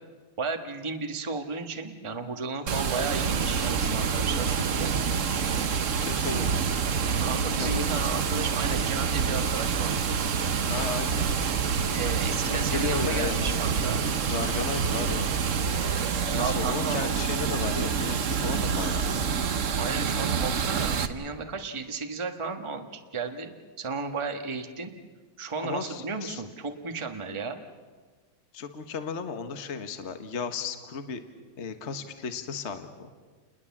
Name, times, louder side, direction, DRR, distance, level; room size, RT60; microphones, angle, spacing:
voice 1, 0.4-4.9 6.3-6.5 7.2-10.0 11.9-14.0 16.3-17.1 19.8-24.9 25.4-27.6, right 4 dB, 15° right, 5 dB, 1.3 m, -34 dB
Water, 2.7-21.1, right 6 dB, 50° right, 1.1 m, -27 dB
voice 2, 6.0-6.6 7.6-8.0 10.7-11.3 12.5-13.6 14.3-15.3 16.3-19.1 25.6-26.4 28.5-31.2 31.6-33.1, left 5 dB, 35° left, 8 dB, 1.5 m, -34 dB
30.0 x 21.0 x 7.3 m, 1.4 s
omnidirectional pair, 2.3 m